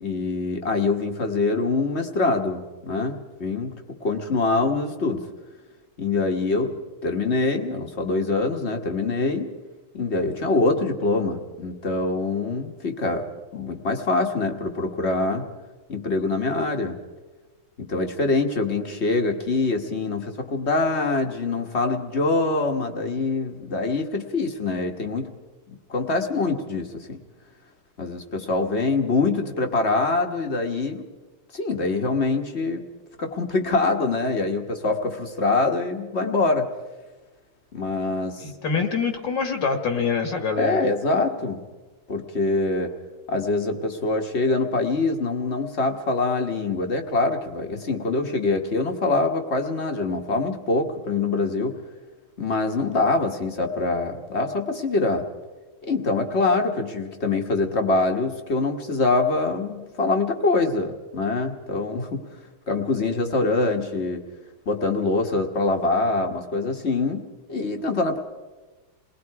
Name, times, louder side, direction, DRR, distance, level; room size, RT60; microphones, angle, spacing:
voice 1, 0.0-3.7 4.0-5.3 6.0-6.7 7.0-9.5 9.9-15.5 15.9-17.0 17.8-25.3 25.9-27.2 28.0-31.1 31.5-32.8 33.2-36.7 37.7-38.5 40.6-41.6 42.1-42.9 43.3-51.8 52.4-55.2 55.8-62.3 62.7-64.2 64.6-68.2, left 3 dB, 35° left, 4 dB, 1.6 m, -24 dB
voice 2, 38.4-40.8, left 5 dB, 60° left, 5 dB, 2.4 m, -25 dB
28.5 x 20.0 x 4.8 m, 1.3 s
omnidirectional pair, 2.3 m